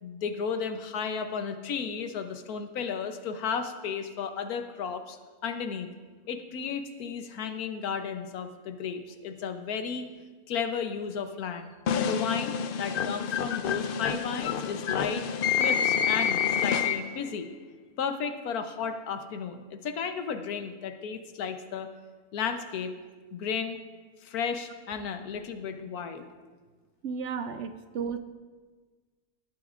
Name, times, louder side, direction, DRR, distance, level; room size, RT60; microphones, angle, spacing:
voice 1, 0.0-5.2 5.4-5.9 6.3-10.1 10.5-11.7 12.0-15.3 15.6-17.5 18.0-21.9 22.3-22.9 23.3-23.8 24.2-26.3, left 6 dB, 85° left, 8 dB, 1.3 m, -33 dB
sound 1, 11.9-17.3, left 7 dB, 70° left, 0.5 m, -28 dB
voice 2, 27.0-28.2, right 6 dB, 65° right, 9 dB, 0.8 m, -33 dB
18.5 x 11.5 x 2.5 m, 1.4 s
omnidirectional pair, 1.5 m